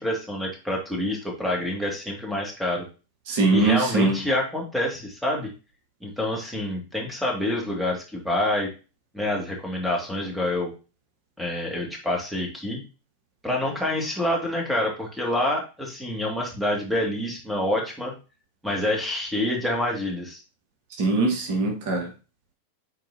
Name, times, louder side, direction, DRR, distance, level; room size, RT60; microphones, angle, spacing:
voice 1, 0.0-2.8 3.5-5.5 6.0-8.7 9.1-10.7 11.4-12.8 13.4-18.1 18.6-20.4, left 1 dB, ahead, 0 dB, 2.2 m, -27 dB
voice 2, 3.3-4.2 21.0-22.1, right 3 dB, 50° right, 2 dB, 1.6 m, -22 dB
9.2 x 4.1 x 2.8 m, 0.32 s
figure-of-eight pair, 90°, 0 cm